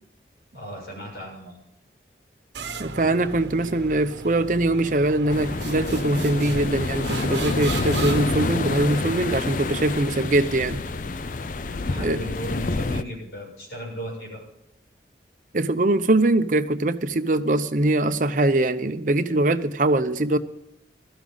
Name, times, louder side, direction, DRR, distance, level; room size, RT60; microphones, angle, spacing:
voice 1, 0.5-1.6 11.7-14.4, equal, 75° left, -2 dB, 7.0 m, -35 dB
sound 1, 2.5-9.9, right 4 dB, 85° right, 1.0 m, -37 dB
voice 2, 2.8-10.8 12.0-12.2 15.5-20.4, right 2 dB, 45° right, 10 dB, 0.7 m, -22 dB
sound 2, 5.3-13.0, left 3 dB, 50° left, 0.5 m, -28 dB
16.0 x 13.5 x 3.9 m, 0.81 s
head